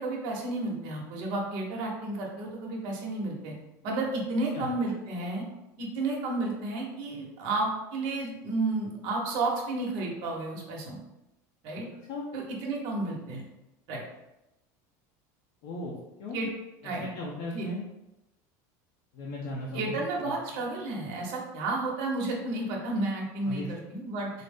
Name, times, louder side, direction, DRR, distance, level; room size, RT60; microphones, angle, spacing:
voice 1, 0.0-3.5 3.8-5.4 5.8-11.0 11.6-11.9 12.3-13.4 13.9-14.0 16.3-16.5 16.8-17.1 17.5-17.7 19.7-24.3, right 2 dB, 60° right, -1 dB, 1.0 m, -32 dB
voice 2, 15.6-15.9 16.2-16.5 16.8-17.8 19.1-20.6 23.5-23.7, left 2 dB, 60° left, -4 dB, 0.7 m, -37 dB
4.0 x 2.1 x 3.5 m, 0.94 s
supercardioid pair, 140°, 9 cm